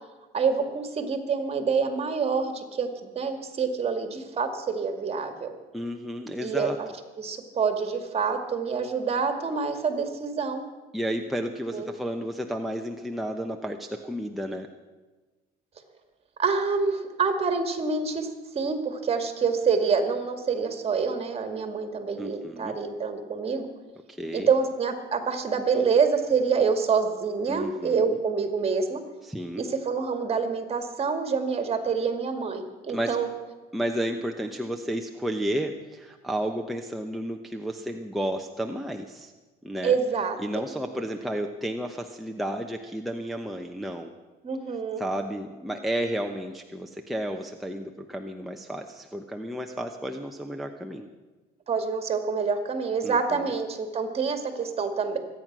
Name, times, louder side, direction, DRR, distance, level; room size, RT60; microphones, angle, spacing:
voice 1, 0.3-5.5 6.4-6.9 7.2-10.6 11.7-11.9 16.4-18.3 18.5-23.7 24.3-29.0 29.6-33.3 39.8-40.4 44.4-45.0 51.7-55.2, right 5 dB, 35° right, 7 dB, 2.2 m, -26 dB
voice 2, 5.7-6.8 10.9-14.7 22.2-22.8 24.1-24.5 27.5-28.2 29.2-29.6 32.9-33.2 33.7-39.3 39.6-39.9 40.4-44.1 45.0-51.1 53.0-53.5, equal, ahead, 2 dB, 0.9 m, -32 dB
24.5 x 9.2 x 6.1 m, 1.2 s
cardioid pair, 110°, 17 cm